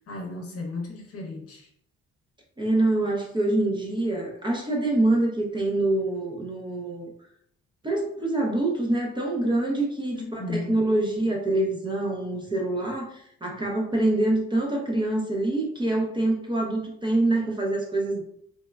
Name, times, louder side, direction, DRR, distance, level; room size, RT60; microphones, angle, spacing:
voice 1, 0.1-1.7 10.1-10.8, left 2 dB, 50° left, 0 dB, 0.8 m, -35 dB
voice 2, 2.6-7.1 7.8-18.2, right 2 dB, 15° right, -1 dB, 0.6 m, -25 dB
3.1 x 2.2 x 2.2 m, 0.67 s
cardioid pair, 90°, 30 cm